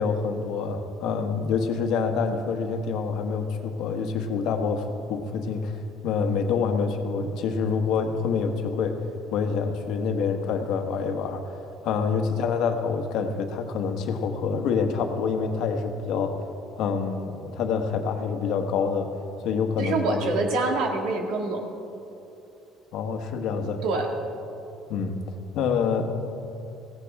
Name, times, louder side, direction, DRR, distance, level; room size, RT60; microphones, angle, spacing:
voice 1, 0.0-5.7 6.0-9.0 9.3-16.3 16.8-19.1 19.4-20.3 22.9-23.8 24.9-25.2 25.5-26.0, left 5 dB, 65° left, 5 dB, 1.2 m, -26 dB
voice 2, 19.8-21.6 23.8-24.1, right 3 dB, 65° right, 2 dB, 1.9 m, -25 dB
16.5 x 15.0 x 3.5 m, 2.8 s
cardioid pair, 145°, 0 cm